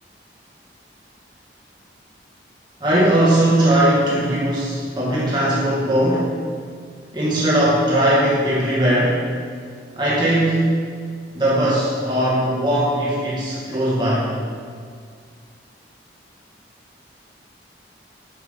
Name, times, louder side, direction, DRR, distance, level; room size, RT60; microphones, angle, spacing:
voice 1, 2.8-6.4 7.1-9.2 10.0-10.7 11.3-14.3, right 1 dB, 25° right, -8 dB, 2.2 m, -19 dB
9.1 x 6.1 x 5.8 m, 2.1 s
head